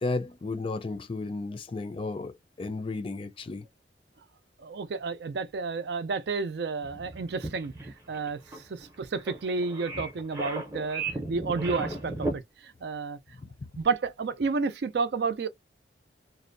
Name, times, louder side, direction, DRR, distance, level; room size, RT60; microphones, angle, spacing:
voice 1, 0.0-2.3 2.6-3.6, left 3 dB, 30° left, 0.4 m, -33 dB
voice 2, 4.6-7.7 8.1-8.4 8.7-11.0 11.3-13.2 13.8-15.5, right 4 dB, 65° right, 0.4 m, -31 dB
sound 1, 6.8-12.4, right 2 dB, 15° right, 0.6 m, -35 dB
2.6 x 2.0 x 2.5 m
head